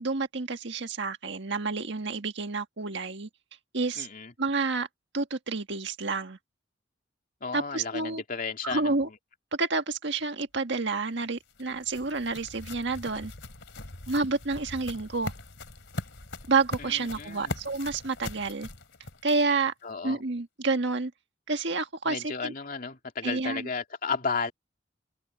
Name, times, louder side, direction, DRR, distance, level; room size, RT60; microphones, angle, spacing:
voice 1, 0.0-3.3 3.7-4.1 4.4-4.9 5.1-6.4 7.5-8.2 8.6-9.1 9.5-13.3 14.1-15.3 16.5-18.7 19.2-19.7 20.0-21.1 21.5-22.5 23.2-23.7, right 3 dB, 65° right, 1.7 m, -29 dB
voice 2, 4.0-4.3 7.4-8.9 16.8-17.6 19.8-20.2 22.1-24.5, left 5 dB, 45° left, 2.7 m, -33 dB
sound 1, 11.1-19.7, left 2 dB, 70° left, 3.3 m, -41 dB
head